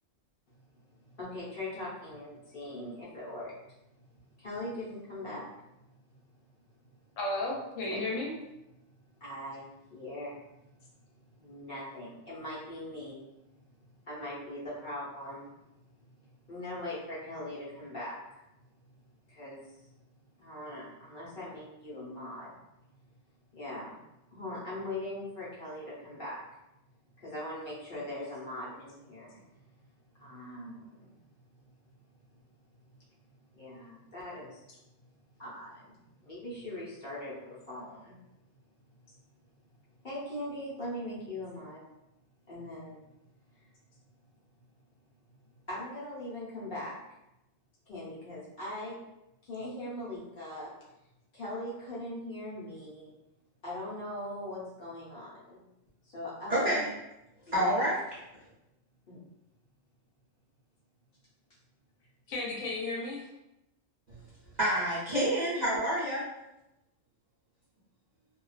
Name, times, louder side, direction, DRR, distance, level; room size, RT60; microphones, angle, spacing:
voice 1, 0.9-3.8 4.1-5.4 6.1-6.2 6.8-6.9 7.8-8.0 9.2-13.8 14.0-15.5 16.0-16.1 16.5-18.4 19.3-19.9 20.4-22.6 23.5-24.0 24.3-26.4 27.2-29.7 30.1-31.2 33.5-34.6 35.4-38.2 40.0-41.8 42.5-43.0 43.6-43.7 45.7-47.0 47.9-49.0 49.4-50.7 51.3-53.1 53.6-55.6 56.0-56.9 57.5-57.7 59.1-59.2, left 1 dB, 50° left, -8 dB, 0.9 m, -41 dB
voice 2, 7.2-8.3 62.3-63.2, left 2 dB, 75° left, -2 dB, 1.0 m, -33 dB
voice 3, 56.5-56.8 57.5-58.0 64.1-64.2 64.6-66.2, right 1 dB, 45° right, -10 dB, 0.6 m, -28 dB
2.3 x 2.3 x 2.3 m, 0.91 s
omnidirectional pair, 1.3 m